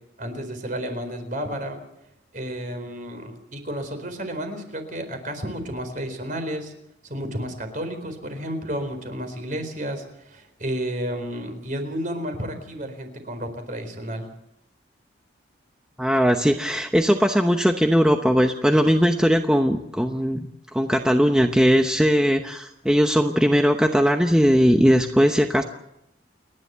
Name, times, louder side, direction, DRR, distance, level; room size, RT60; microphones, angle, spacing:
voice 1, 0.2-1.8 2.3-6.7 7.1-14.3, equal, 45° right, 7 dB, 4.2 m, -31 dB
voice 2, 16.0-20.5 20.7-25.6, equal, 5° right, 5 dB, 0.9 m, -19 dB
29.5 x 11.0 x 8.1 m, 0.84 s
head